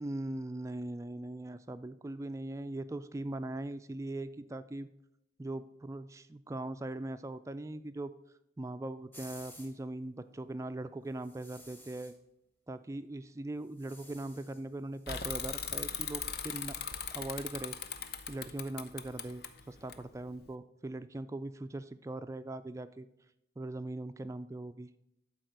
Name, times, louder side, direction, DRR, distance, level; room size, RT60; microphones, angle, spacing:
voice 1, 0.0-4.9 5.4-8.1 8.6-12.2 12.7-16.8 17.1-18.0 18.3-23.1 23.6-24.9, right 2 dB, 15° right, 12 dB, 0.3 m, -40 dB
sound 1, 9.1-9.7 11.2-12.2 13.6-14.6 14.9-17.3, left 1 dB, 10° left, 1.1 m, -56 dB
Bicycle / Mechanisms, 15.1-20.5, left 7 dB, 60° left, 0.7 m, -39 dB
12.0 x 4.2 x 6.5 m, 0.82 s
head